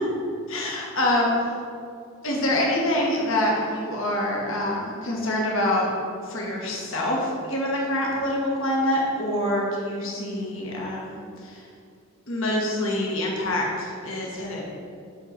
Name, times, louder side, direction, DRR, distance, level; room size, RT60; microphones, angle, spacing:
voice 1, 0.5-1.6 2.2-5.9 6.2-11.6 12.3-14.6, left 1 dB, 60° left, -2 dB, 1.5 m, -26 dB
10.0 x 4.0 x 6.0 m, 2.3 s
head